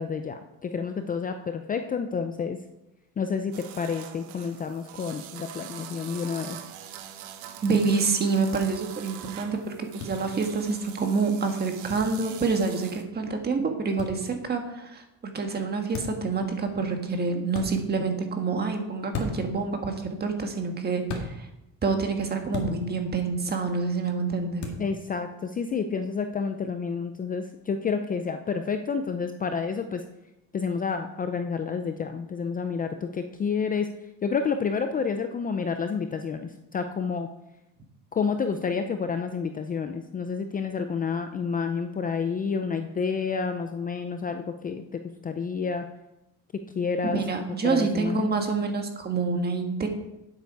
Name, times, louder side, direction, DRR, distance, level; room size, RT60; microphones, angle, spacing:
voice 1, 0.0-2.6 3.2-6.6 24.8-30.0 30.5-33.9 34.2-37.3 38.1-45.8 46.7-47.2 47.6-48.4, left 5 dB, 25° left, 7 dB, 0.5 m, -29 dB
sound 1, 3.5-13.1, right 10 dB, 90° right, 1.1 m, -43 dB
voice 2, 7.6-21.5 21.8-24.7 47.1-49.9, right 4 dB, 25° right, 4 dB, 1.6 m, -27 dB
sound 2, 10.0-10.1 11.9-12.1 14.0-14.1 15.9-16.2 17.5-17.7 19.1-19.5 21.1-21.3 22.5-22.7 24.6-24.8, left 4 dB, 50° left, 2.1 m, -33 dB
9.5 x 8.1 x 4.7 m, 0.90 s
cardioid pair, 130°, 36 cm